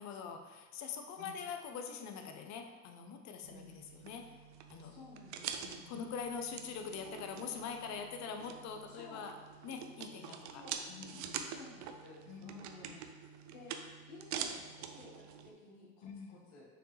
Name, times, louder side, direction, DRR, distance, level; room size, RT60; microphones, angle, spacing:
voice 1, 0.0-4.3 4.7-4.9 5.6-9.4 9.6-10.6 10.9-11.4 12.3-12.5 16.0-16.4, left 6 dB, 60° left, 5 dB, 0.8 m, -44 dB
sound 1, 3.4-15.5, right 8 dB, 65° right, 0.6 m, -46 dB
voice 2, 4.8-6.0 8.9-9.2 10.5-13.7 14.1-16.7, left 3 dB, 85° left, -4 dB, 1.5 m, -55 dB
6.6 x 4.5 x 3.3 m, 1.3 s
supercardioid pair, 85°, 31 cm